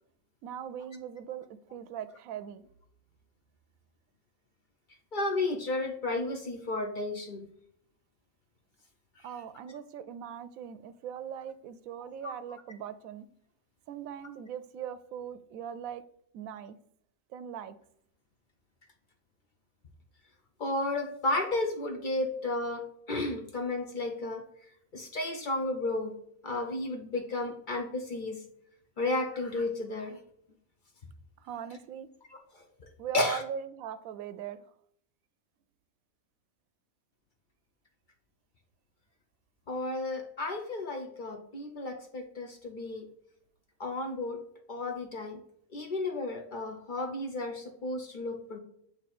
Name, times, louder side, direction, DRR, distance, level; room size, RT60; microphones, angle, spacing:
voice 1, 0.4-2.6 9.2-13.3 13.9-16.0 16.3-16.8 17.3-17.7 31.4-32.1 33.0-34.7, right 9 dB, 80° right, 13 dB, 1.0 m, -40 dB
voice 2, 5.1-7.5 9.2-9.3 12.2-12.3 20.6-24.4 24.9-26.1 26.4-28.4 29.0-30.2 32.3-32.7 33.1-33.4 39.7-43.1 43.8-44.4 44.7-45.4 45.7-48.6, left 2 dB, 45° left, 4 dB, 0.7 m, -33 dB
7.8 x 2.9 x 4.2 m, 0.70 s
omnidirectional pair, 1.5 m